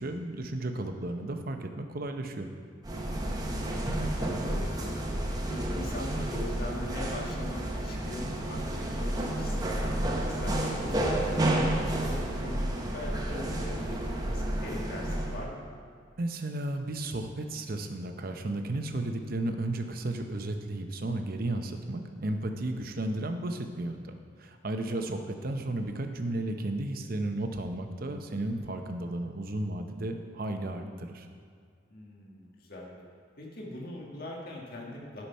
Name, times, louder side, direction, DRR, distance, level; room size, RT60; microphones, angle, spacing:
voice 1, 0.0-2.5 16.2-31.3, right 1 dB, 50° right, 6 dB, 0.8 m, -34 dB
sound 1, 2.8-15.4, right 1 dB, 20° right, 0.9 m, -31 dB
voice 2, 3.0-5.1 5.5-10.5 10.8-15.7 24.9-25.1 31.9-33.0 33.4-35.3, left 1 dB, 50° left, -2 dB, 1.5 m, -41 dB
11.5 x 5.8 x 5.5 m, 2.1 s
head